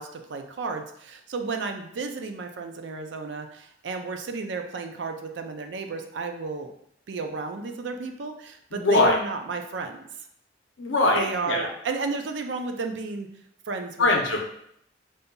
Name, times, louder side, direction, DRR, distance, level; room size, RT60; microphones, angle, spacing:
voice 1, 0.0-6.7 7.1-10.1 11.1-13.3 13.7-14.1, right 4 dB, 70° right, 5 dB, 0.5 m, -32 dB
voice 2, 8.7-9.2 10.8-11.7 14.0-14.4, left 3 dB, 90° left, 1 dB, 0.7 m, -22 dB
5.2 x 2.7 x 2.2 m, 0.72 s
head